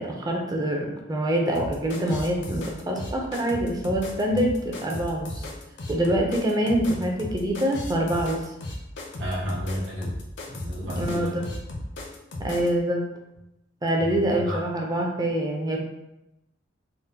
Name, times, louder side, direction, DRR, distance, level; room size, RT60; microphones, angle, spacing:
voice 1, 0.0-5.5 5.9-8.4 11.0-11.4 12.4-13.0 13.8-15.8, right 1 dB, 20° right, 1 dB, 0.4 m, -25 dB
sound 1, 1.5-12.7, left 1 dB, 65° left, 0.5 m, -35 dB
voice 2, 9.2-10.1 10.5-11.4 14.0-14.6, equal, 70° right, -6 dB, 0.9 m, -32 dB
3.6 x 2.0 x 2.7 m, 0.90 s
head